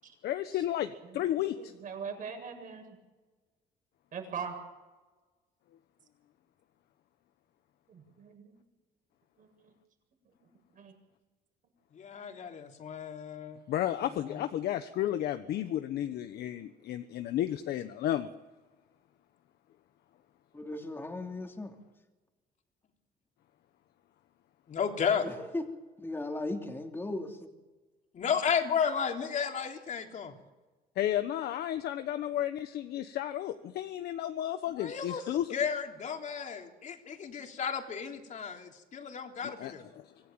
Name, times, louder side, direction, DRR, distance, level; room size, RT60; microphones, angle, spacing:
voice 1, 0.2-1.7 13.7-18.3 31.0-35.5 39.6-39.7 40.0-40.1, left 12 dB, 70° left, 9 dB, 1.2 m, -32 dB
voice 2, 1.4-3.0 4.1-4.5 7.9-8.5 9.4-9.7 10.7-10.9, right 6 dB, 50° right, 3 dB, 7.8 m, -41 dB
voice 3, 11.9-13.6 14.2-14.4 24.7-25.3 28.1-30.3 34.7-39.8, left 7 dB, 45° left, 3 dB, 3.4 m, -33 dB
voice 4, 20.5-21.8 25.2-25.6 26.0-27.5, left 2 dB, 15° left, 3 dB, 2.9 m, -37 dB
25.5 x 17.0 x 9.2 m, 1.2 s
cardioid pair, 110°, 17 cm